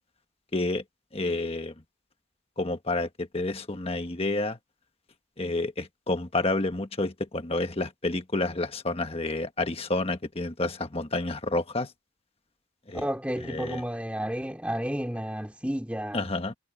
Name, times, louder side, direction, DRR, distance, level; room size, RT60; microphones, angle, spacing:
voice 1, 0.5-0.8 1.1-1.7 2.6-4.6 5.4-11.9 12.9-13.0 13.4-13.8 16.1-16.5, left 2 dB, 25° left, 1.3 m, -29 dB
voice 2, 12.9-16.3, equal, 5° right, 2.6 m, -31 dB
head